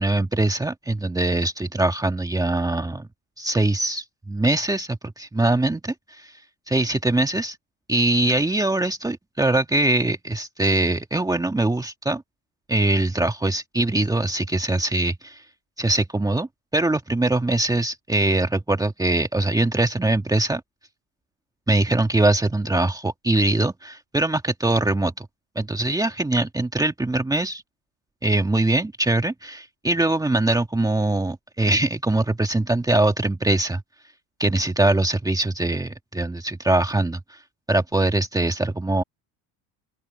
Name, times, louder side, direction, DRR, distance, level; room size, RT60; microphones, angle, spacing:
voice 1, 0.0-3.1 3.4-6.3 6.7-7.6 7.9-12.2 12.7-15.4 15.8-16.5 16.7-20.6 21.7-25.3 25.6-27.6 28.2-33.8 34.4-37.4 37.7-39.0, right 2 dB, 10° right, 2.0 m, -22 dB
open air
supercardioid pair, 100°, 40 cm